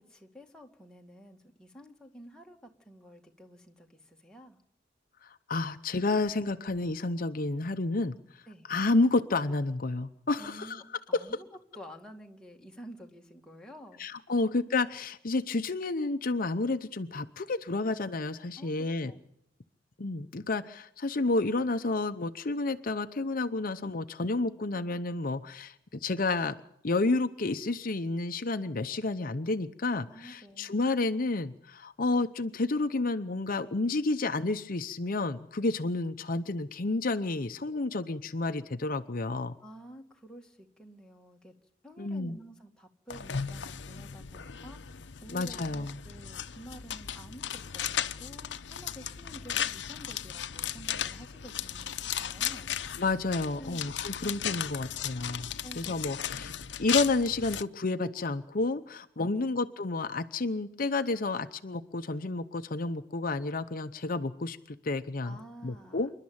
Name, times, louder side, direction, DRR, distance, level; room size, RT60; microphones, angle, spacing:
voice 1, 0.0-4.6 8.5-8.7 10.4-11.5 11.7-14.0 14.3-14.4 18.6-19.2 30.0-30.8 39.6-41.6 41.8-52.9 53.6-53.9 54.2-54.4 55.6-56.0 59.2-59.6 65.2-66.1, right 1 dB, 5° left, 1 dB, 2.2 m, -50 dB
voice 2, 5.2-8.4 8.7-10.8 11.1-11.2 14.0-19.1 20.0-26.6 26.8-39.6 42.0-42.4 45.3-46.0 53.0-55.5 55.8-56.5 56.8-65.4 65.6-66.1, left 3 dB, 50° left, 9 dB, 0.8 m, -30 dB
sound 1, 43.1-57.6, left 9 dB, 85° left, 0.8 m, -36 dB
27.5 x 11.5 x 8.7 m, 0.75 s
head